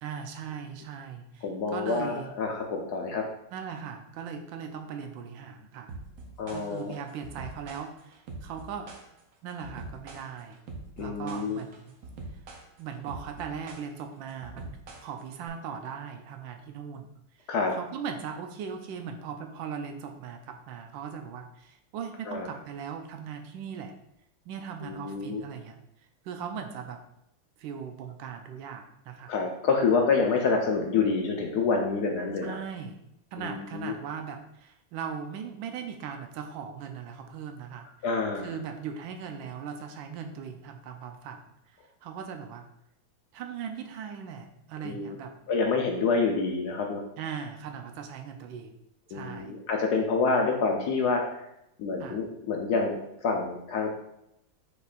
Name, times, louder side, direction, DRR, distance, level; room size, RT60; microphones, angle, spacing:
voice 1, 0.0-1.4 1.7-2.3 3.5-5.9 6.5-8.9 9.4-10.6 11.0-11.9 12.3-12.4 12.8-17.1 17.4-23.9 24.5-25.8 26.2-27.0 27.6-29.3 32.4-33.0 33.3-37.9 38.4-41.4 41.7-42.7 43.3-45.3 47.2-48.8 49.1-49.5 52.0-52.2, right 7 dB, 80° right, 5 dB, 1.3 m, -39 dB
voice 2, 1.4-3.2 6.4-6.9 11.0-11.6 17.5-17.7 22.3-22.5 24.8-25.4 29.3-32.6 33.4-33.9 38.0-38.5 44.8-45.2 45.5-47.0 49.1-51.5 51.8-53.9, left 4 dB, 70° left, 2 dB, 1.0 m, -27 dB
sound 1, 5.9-15.5, right 3 dB, 60° right, 1.0 m, -44 dB
5.1 x 4.3 x 2.4 m, 0.80 s
omnidirectional pair, 2.1 m